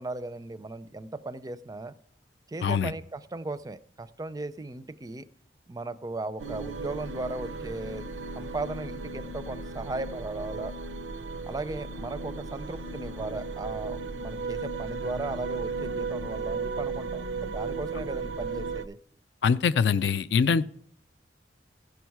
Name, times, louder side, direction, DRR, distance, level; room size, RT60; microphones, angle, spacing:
voice 1, 0.0-2.0 2.5-5.2 5.7-8.0 8.3-10.7 11.4-19.0, right 2 dB, 20° right, 0.4 m, -37 dB
sound 1, 6.4-18.9, right 4 dB, 80° right, 0.5 m, -35 dB
voice 2, 19.4-20.6, left 6 dB, 70° left, 0.4 m, -23 dB
15.5 x 6.3 x 4.6 m
head